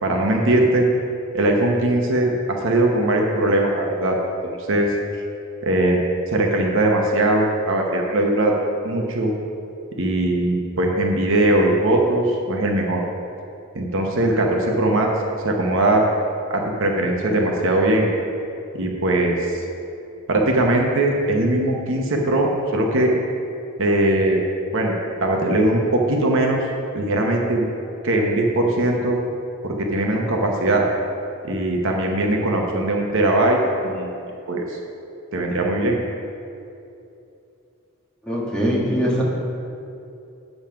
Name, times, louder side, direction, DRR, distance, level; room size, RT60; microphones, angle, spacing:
voice 1, 0.0-0.9 1.3-4.2 4.4-4.9 5.6-6.0 6.3-8.5 8.8-9.3 10.0-13.0 13.7-15.1 15.4-16.0 16.5-18.1 18.7-19.6 20.3-23.1 23.8-24.4 24.7-24.9 25.2-26.6 26.9-27.7 28.0-29.2 29.6-30.8 31.4-33.6 33.8-34.2 34.5-34.8 35.3-36.0, right 1 dB, 65° right, 1 dB, 1.0 m, -20 dB
voice 2, 38.2-39.2, equal, 5° left, -6 dB, 1.6 m, -22 dB
8.7 x 5.6 x 5.7 m, 2.7 s
head